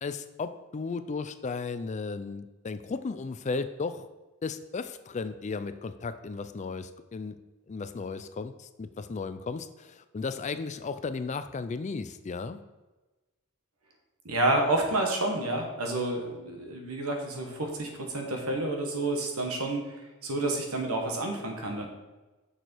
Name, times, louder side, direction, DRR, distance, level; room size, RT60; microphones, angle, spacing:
voice 1, 0.0-4.1 4.4-7.4 7.7-12.6, left 4 dB, 30° left, 11 dB, 0.4 m, -35 dB
voice 2, 14.2-19.8 20.2-21.9, right 2 dB, 80° right, 3 dB, 1.5 m, -29 dB
6.7 x 6.5 x 4.5 m, 1.1 s
head